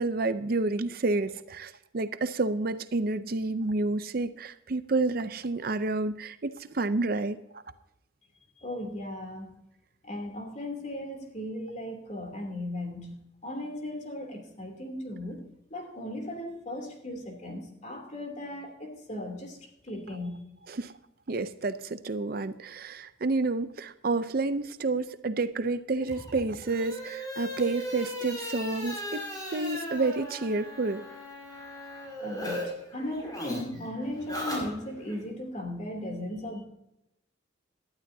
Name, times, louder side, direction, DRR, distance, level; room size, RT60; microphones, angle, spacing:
voice 1, 0.0-7.6 20.7-20.9 21.3-29.2 29.5-31.0, right 3 dB, 50° right, 12 dB, 0.6 m, -29 dB
voice 2, 8.6-9.5 10.0-13.1 13.4-19.6 19.8-20.4 32.2-36.6, left 1 dB, 40° left, 3 dB, 2.9 m, -37 dB
sound 1, 26.0-32.6 32.9-35.2, equal, 20° left, 5.2 m, -38 dB
18.5 x 12.0 x 2.7 m, 0.84 s
head